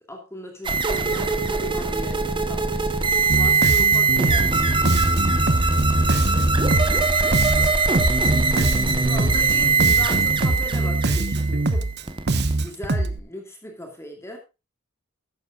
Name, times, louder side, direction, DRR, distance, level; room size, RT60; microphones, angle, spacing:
voice 1, 0.1-4.8 9.0-11.9 12.5-14.4, left 1 dB, 15° left, 2 dB, 2.6 m, -37 dB
sound 1, 0.6-12.5, right 3 dB, 25° right, 1.1 m, -21 dB
Bass guitar, 3.3-13.2, right 2 dB, 50° right, 1.0 m, -24 dB
voice 2, 3.8-4.1 6.3-7.9 8.4-10.2, left 1 dB, 50° left, 2 dB, 5.5 m, -45 dB
14.5 x 12.0 x 2.4 m, 0.27 s
head